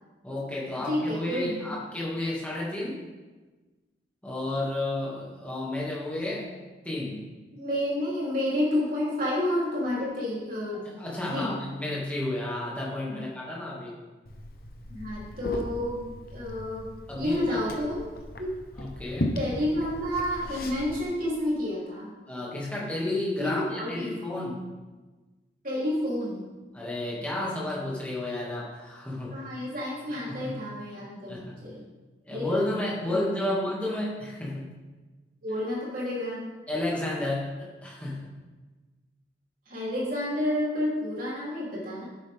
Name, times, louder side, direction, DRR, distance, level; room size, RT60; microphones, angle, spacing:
voice 1, 0.2-3.0 4.2-6.5 6.8-7.2 10.8-13.9 17.1-17.6 18.8-19.4 22.3-24.6 26.7-29.3 30.1-30.6 31.3-31.6 32.3-34.7 36.7-38.3, left 1 dB, 5° left, -6 dB, 2.3 m, -32 dB
voice 2, 0.9-1.8 7.5-10.9 11.3-11.6 13.1-13.2 14.9-18.1 18.4-18.6 19.4-22.1 23.4-24.2 25.6-26.4 29.3-31.8 32.3-32.6 33.1-33.5 35.4-36.5 39.7-42.0, left 1 dB, 45° right, -6 dB, 3.5 m, -30 dB
Liquid, 14.3-21.0, left 1 dB, 50° left, 1.0 m, -37 dB
11.5 x 8.6 x 3.6 m, 1.3 s
head